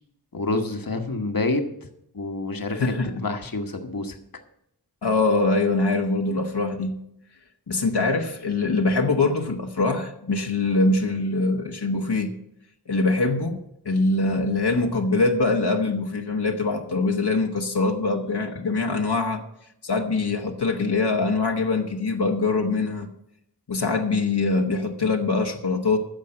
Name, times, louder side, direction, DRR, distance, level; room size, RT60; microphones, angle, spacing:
voice 1, 0.3-1.6 2.1-2.9 3.2-4.2, left 2 dB, 60° left, 5 dB, 1.2 m, -27 dB
voice 2, 2.7-3.3 5.0-7.0 7.7-12.4 12.9-13.6 13.8-19.4 19.8-23.1 23.7-26.0, left 3 dB, 90° left, 3 dB, 1.2 m, -23 dB
10.0 x 6.6 x 8.6 m, 0.78 s
wide cardioid pair, 45°, 38 cm